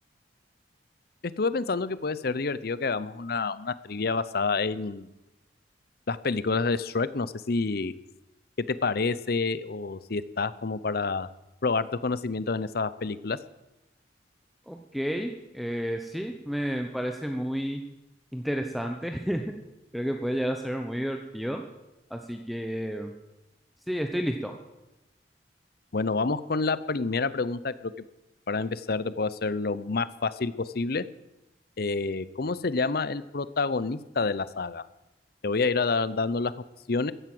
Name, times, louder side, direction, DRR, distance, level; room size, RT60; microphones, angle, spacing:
voice 1, 1.4-5.1 6.1-7.9 8.6-11.3 11.6-13.4 25.9-27.9 28.5-31.0 31.8-34.8 35.4-37.1, left 4 dB, 60° left, 16 dB, 0.7 m, -28 dB
voice 2, 14.7-17.8 18.3-19.4 19.9-21.6 22.1-23.1 23.9-24.5, equal, ahead, 4 dB, 0.9 m, -31 dB
14.5 x 11.0 x 7.8 m, 0.97 s
head